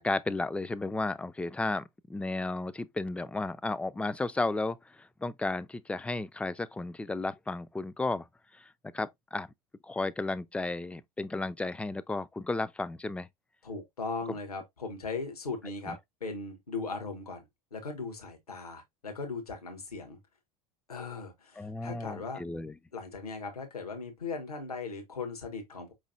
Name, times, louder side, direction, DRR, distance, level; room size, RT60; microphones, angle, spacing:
voice 1, 0.0-8.3 8.5-9.5 9.8-13.3 15.9-16.0 21.6-22.8, left 2 dB, 5° left, 0.3 m, -33 dB
voice 2, 13.6-17.4 17.7-20.2 20.9-22.4 22.9-25.9, left 4 dB, 80° left, 1.2 m, -38 dB
5.2 x 3.1 x 2.6 m
figure-of-eight pair, 75°, 19 cm